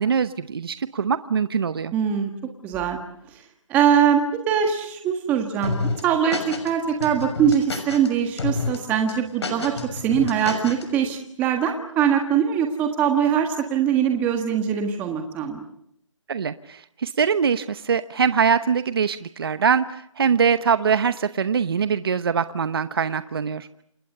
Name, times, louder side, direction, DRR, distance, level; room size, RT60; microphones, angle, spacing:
voice 1, 0.0-1.9 16.3-23.8, right 6 dB, 45° right, 12 dB, 1.0 m, -23 dB
voice 2, 1.9-2.3 2.6-3.0 3.7-15.6, right 8 dB, 10° right, 4 dB, 1.6 m, -22 dB
sound 1, 5.6-6.7 7.0-8.1 8.4-8.8 9.1-10.8, left 4 dB, 55° left, 6.3 m, -29 dB
29.0 x 27.0 x 6.8 m, 0.73 s
hypercardioid pair, 165°, 17 cm